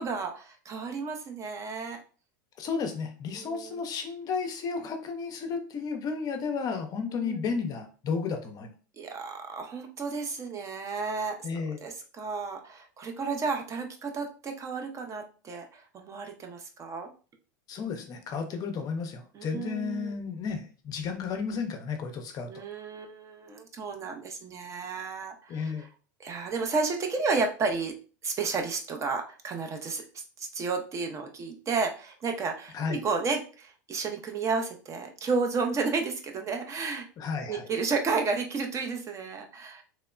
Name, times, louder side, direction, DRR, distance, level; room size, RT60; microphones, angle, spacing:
voice 1, 0.0-2.0 3.3-3.8 7.2-7.4 9.0-11.5 11.8-17.1 19.3-20.1 22.5-25.9 26.2-27.9 28.2-37.1 37.5-39.8, right 4 dB, 30° right, 4 dB, 0.5 m, -32 dB
voice 2, 2.6-8.7 11.4-11.8 17.7-22.5 25.5-25.8 32.7-33.0 37.2-37.6, left 5 dB, 35° left, 6 dB, 0.5 m, -33 dB
3.0 x 2.0 x 2.4 m, 0.37 s
hypercardioid pair, 95°, 10 cm